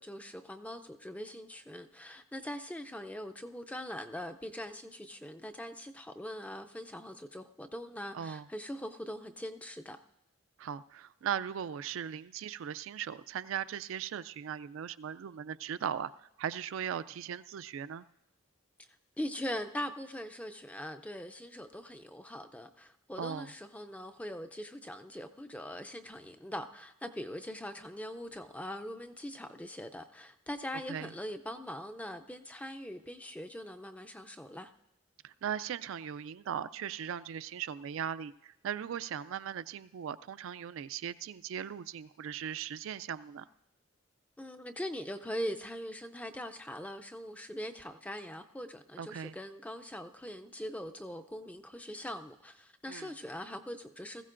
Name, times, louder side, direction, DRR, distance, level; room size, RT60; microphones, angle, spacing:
voice 1, 0.0-10.0 18.8-18.9 19.2-34.7 44.4-54.2, equal, 5° left, 7 dB, 0.4 m, -42 dB
voice 2, 8.1-8.5 10.6-18.1 23.2-23.5 30.9-31.1 35.2-43.5 49.0-49.4 52.9-53.1, right 8 dB, 75° right, 14 dB, 0.3 m, -38 dB
20.0 x 15.0 x 2.5 m, 0.89 s
head